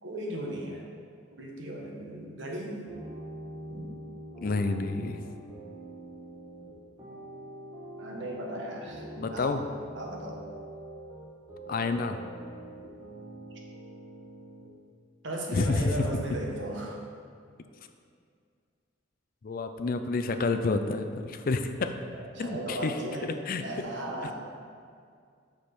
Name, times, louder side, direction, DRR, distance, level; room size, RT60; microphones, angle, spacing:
voice 1, 0.0-0.8 1.3-2.8 3.7-3.9 8.0-9.6 9.9-10.4 15.2-17.1 22.1-23.3 23.6-24.3, right 1 dB, 65° right, -1 dB, 1.1 m, -36 dB
sound 1, 2.9-14.7, right 1 dB, 20° right, 1.4 m, -44 dB
voice 2, 4.4-5.2 9.2-9.6 11.7-12.2 15.5-16.1 19.4-21.9 22.4-23.0 23.3-23.6, left 3 dB, 45° left, 8 dB, 0.4 m, -29 dB
6.1 x 5.2 x 4.3 m, 2.2 s
head